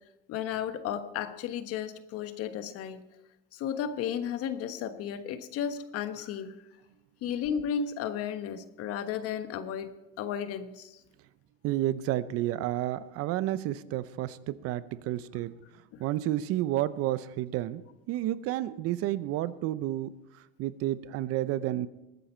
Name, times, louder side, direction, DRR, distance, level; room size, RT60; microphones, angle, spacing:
voice 1, 0.3-3.0 3.5-6.6 7.2-9.9 10.2-11.0 15.9-16.0, left 8 dB, 55° left, 10 dB, 1.3 m, -34 dB
voice 2, 11.6-15.5 16.0-17.8 18.1-21.9, right 14 dB, 55° right, 16 dB, 0.7 m, -31 dB
21.0 x 9.2 x 4.4 m, 0.96 s
supercardioid pair, 110°, 29 cm